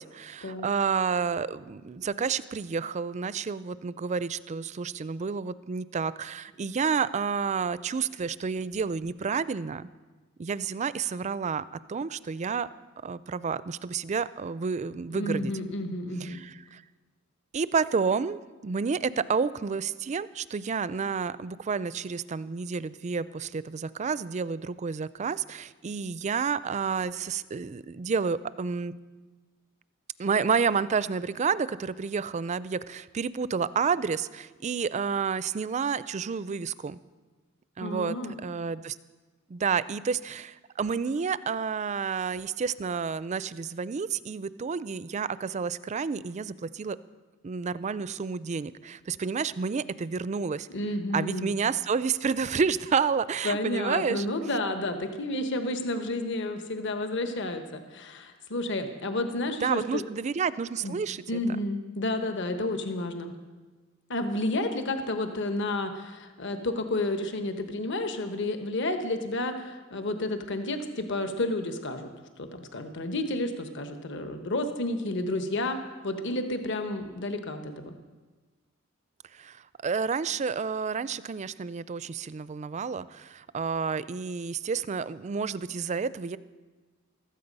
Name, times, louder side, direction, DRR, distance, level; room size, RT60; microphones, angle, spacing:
voice 1, 0.0-9.9 10.4-12.7 13.0-15.5 16.2-16.8 17.5-28.9 30.2-37.0 37.8-39.0 39.5-47.0 47.4-50.7 51.1-54.3 59.6-61.2 79.3-86.4, right 5 dB, 35° right, 17 dB, 0.4 m, -30 dB
voice 2, 15.1-16.4 37.8-38.3 50.7-51.5 53.4-60.0 60.8-60.9 61.3-63.3 64.1-72.1 72.4-75.8 76.0-78.0, left 2 dB, 60° left, 7 dB, 1.2 m, -31 dB
15.5 x 13.0 x 5.4 m, 1.3 s
head